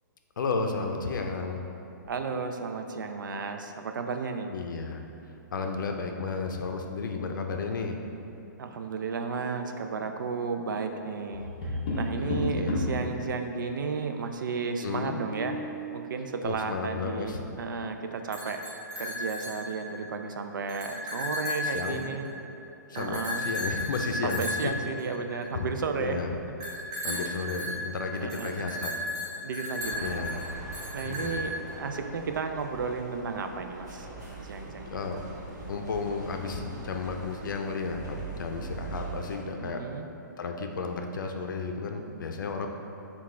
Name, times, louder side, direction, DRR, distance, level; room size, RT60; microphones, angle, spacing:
voice 1, 0.4-1.6 4.5-5.0 5.5-8.0 12.2-13.1 14.8-15.2 16.4-17.4 21.6-22.0 22.9-24.7 25.5-25.7 26.0-26.3 27.0-28.9 30.0-30.4 31.1-31.4 34.9-35.2 35.7-39.8 40.4-42.7, left 4 dB, 80° left, 4 dB, 0.5 m, -33 dB
voice 2, 2.1-4.5 8.6-15.6 15.9-18.6 19.0-22.3 23.0-23.5 24.2-26.2 27.0-27.3 28.2-28.6 29.4-30.2 30.9-35.1 39.6-40.1, right 5 dB, 80° right, 6 dB, 0.4 m, -33 dB
Tap, 11.3-13.0 15.0-15.8, left 2 dB, 25° left, 0.5 m, -31 dB
sound 1, 18.2-20.1 20.5-22.4 22.9-25.7 26.6-31.7, left 1 dB, 25° right, 0.6 m, -35 dB
sound 2, 29.8-39.4, right 3 dB, 60° right, 1.1 m, -42 dB
5.8 x 2.3 x 3.1 m, 2.8 s
hypercardioid pair, 175°, 10 cm